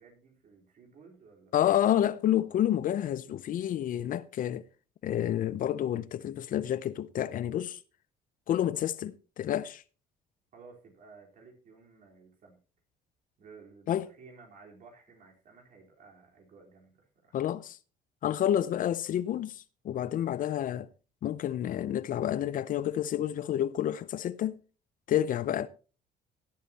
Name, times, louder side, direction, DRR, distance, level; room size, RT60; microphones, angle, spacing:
voice 1, 0.0-1.5 10.5-12.6 13.4-17.4, right 4 dB, 55° right, 4.0 m, -55 dB
voice 2, 1.5-4.6 5.0-7.8 8.5-9.8 13.9-14.1 17.3-17.8 18.2-20.9 21.2-24.6 25.1-25.7, left 11 dB, 55° left, 0.6 m, -29 dB
16.5 x 8.6 x 2.9 m
cardioid pair, 110°, 17 cm